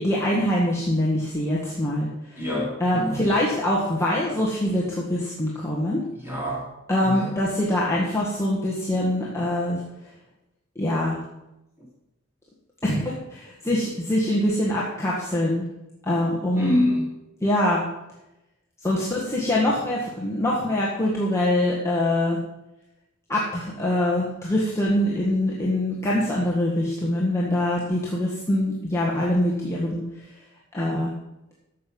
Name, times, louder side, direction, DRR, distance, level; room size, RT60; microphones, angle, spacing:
voice 1, 0.0-2.4 2.8-6.0 6.9-9.8 10.8-11.2 12.9-13.0 13.3-15.6 16.0-16.8 17.4-17.9 18.8-22.4 23.3-30.0 30.7-31.1, left 1 dB, 15° left, -6 dB, 1.6 m, -24 dB
voice 2, 2.4-3.3 6.1-6.7 7.0-7.4 11.8-11.9 16.5-17.1, left 1 dB, 10° right, -5 dB, 4.0 m, -26 dB
12.5 x 7.7 x 5.4 m, 0.92 s
head